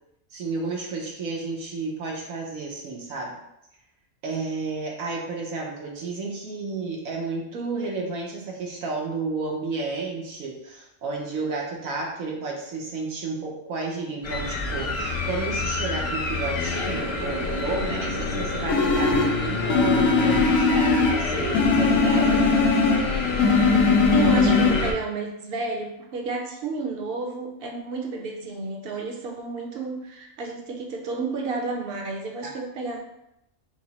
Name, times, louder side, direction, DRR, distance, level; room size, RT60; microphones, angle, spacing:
voice 1, 0.3-3.4 4.2-22.5, right 3 dB, 85° right, -1 dB, 1.3 m, -31 dB
sound 1, 14.2-24.9, left 3 dB, 60° left, 0.8 m, -27 dB
sound 2, 18.7-19.4 19.7-21.2 21.5-23.1 23.4-24.7, left 4 dB, 85° left, 1.0 m, -20 dB
voice 2, 24.1-33.0, right 3 dB, 50° right, 1 dB, 0.8 m, -31 dB
4.8 x 2.1 x 4.1 m, 0.84 s
omnidirectional pair, 1.4 m